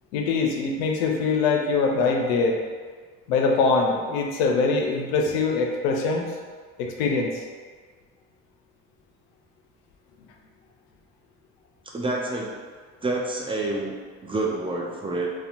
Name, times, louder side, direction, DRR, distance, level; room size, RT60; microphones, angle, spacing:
voice 1, 0.1-2.6 3.3-6.3 6.8-7.3, left 4 dB, 90° left, 1 dB, 0.5 m, -23 dB
voice 2, 11.9-12.5 13.0-13.9 14.2-15.3, right 2 dB, 20° right, -2 dB, 0.4 m, -28 dB
2.8 x 2.1 x 2.5 m, 1.5 s
supercardioid pair, 80°, 30 cm